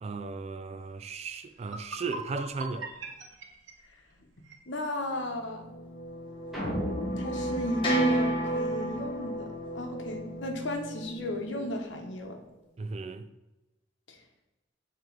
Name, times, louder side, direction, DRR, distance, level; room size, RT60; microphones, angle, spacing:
voice 1, 0.0-2.9 12.8-13.3, right 4 dB, 35° right, 0.3 m, -36 dB
sound 1, 1.1-1.2 1.6-4.6, right 3 dB, 80° right, 0.8 m, -41 dB
voice 2, 4.7-5.6 7.2-9.5 9.7-12.4, left 1 dB, 80° left, 0.9 m, -34 dB
sound 2, 5.3-11.8, right 1 dB, 25° left, 1.2 m, -32 dB
sound 3, 6.5-9.0, equal, ahead, 1.7 m, -36 dB
6.9 x 3.0 x 4.5 m
head